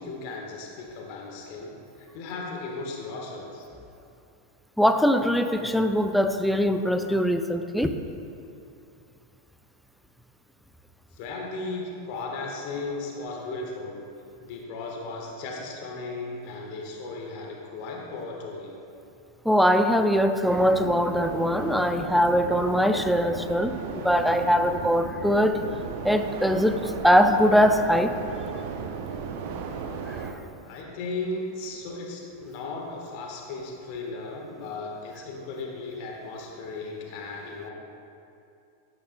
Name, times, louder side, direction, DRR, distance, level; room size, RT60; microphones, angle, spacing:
voice 1, 0.0-3.6 11.1-14.0 14.4-18.8 30.6-37.7, left 3 dB, 45° left, 0 dB, 1.3 m, -36 dB
voice 2, 4.8-7.9 19.4-25.6 26.0-28.1 30.1-30.2, equal, ahead, 7 dB, 0.5 m, -22 dB
sound 1, 20.4-30.3, right 5 dB, 50° right, 0.6 m, -35 dB
12.0 x 8.8 x 2.2 m, 2.6 s
figure-of-eight pair, 90°, 0 cm